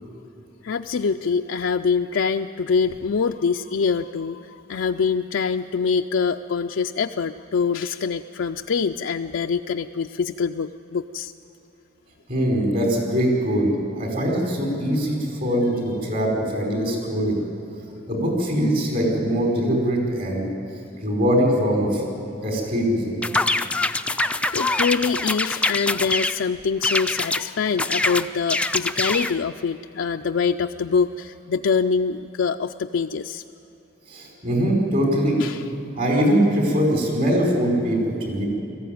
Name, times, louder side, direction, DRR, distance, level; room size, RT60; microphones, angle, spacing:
voice 1, 0.6-11.3 23.6-24.1 24.5-33.4 35.4-35.6, left 5 dB, 75° left, 4 dB, 0.4 m, -24 dB
voice 2, 12.3-13.7 14.0-17.4 18.1-20.4 21.0-22.0 22.4-23.2 34.1-35.4 35.9-38.4, equal, 50° right, -1 dB, 5.1 m, -22 dB
sound 1, 23.2-26.4 26.8-27.4 27.8-29.4, left 2 dB, 5° left, 0.4 m, -24 dB
19.5 x 14.5 x 9.4 m, 2.9 s
head